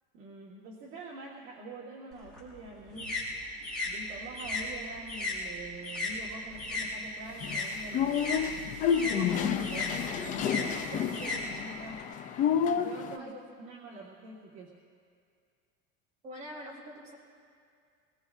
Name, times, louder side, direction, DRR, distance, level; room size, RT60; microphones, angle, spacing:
voice 1, 0.1-3.1 3.8-8.4 8.9-12.0 12.7-14.7, right 2 dB, 45° right, -4 dB, 1.6 m, -45 dB
sound 1, 2.1-6.9 7.2-12.0, left 2 dB, ahead, 4.1 m, -36 dB
sound 2, 7.4-13.2, left 8 dB, 30° left, 0.4 m, -30 dB
voice 2, 13.1-13.7 16.2-17.1, equal, 25° right, -4 dB, 3.4 m, -45 dB
24.5 x 20.0 x 2.5 m, 2.3 s
cardioid pair, 165°, 29 cm